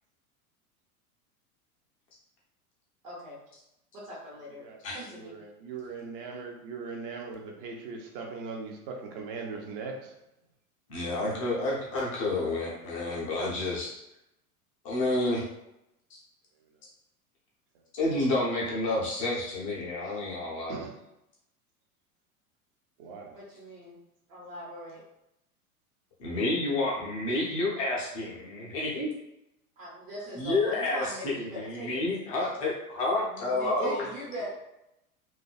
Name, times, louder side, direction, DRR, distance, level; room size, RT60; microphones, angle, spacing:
voice 1, 3.0-3.4 3.9-4.6 4.9-5.3 23.3-24.0 24.3-25.0 29.8-32.0 33.2-34.5, equal, 60° right, -5 dB, 1.0 m, -40 dB
voice 2, 4.6-10.1 20.0-20.2 20.7-20.9 23.0-23.3 34.2-34.5, right 4 dB, 40° right, 1 dB, 0.5 m, -40 dB
voice 3, 10.9-14.0 14.8-15.4 17.9-20.8 26.2-29.1 30.3-34.0, left 2 dB, 25° left, -4 dB, 0.3 m, -29 dB
2.5 x 2.2 x 2.3 m, 0.86 s
figure-of-eight pair, 90°, 46 cm